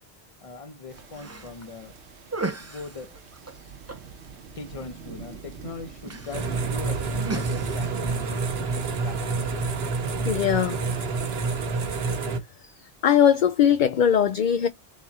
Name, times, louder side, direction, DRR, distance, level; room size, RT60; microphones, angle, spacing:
voice 1, 0.4-1.9 2.6-3.2 4.6-8.4 8.7-9.6, left 4 dB, 35° left, 0.8 m, -40 dB
sound 1, 0.8-12.4, right 3 dB, 20° right, 0.4 m, -41 dB
sound 2, 0.9-8.3, right 7 dB, 85° right, 1.1 m, -44 dB
sound 3, 6.3-12.4, right 4 dB, 70° right, 1.2 m, -28 dB
voice 2, 10.2-10.8 13.0-14.7, left 9 dB, 60° left, 0.6 m, -20 dB
3.5 x 3.1 x 4.1 m
omnidirectional pair, 1.1 m